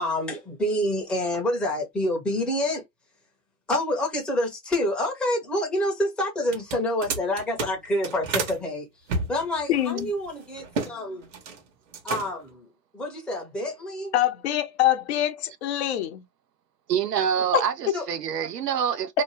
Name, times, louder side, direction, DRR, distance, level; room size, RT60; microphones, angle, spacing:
voice 1, 0.0-2.8 3.7-8.9 9.3-11.3 12.0-12.7 12.9-14.1 17.9-18.0, left 1 dB, ahead, 0.7 m, -27 dB
sound 1, 6.4-8.6 9.1-10.9 11.2-11.6 11.9-12.5, right 4 dB, 50° right, 1.2 m, -31 dB
voice 2, 9.7-10.1 14.1-16.2 17.5-18.0, left 12 dB, 45° left, 0.7 m, -25 dB
voice 3, 16.9-19.2, right 8 dB, 80° right, 0.9 m, -26 dB
2.8 x 2.2 x 3.1 m
hypercardioid pair, 130°, 48 cm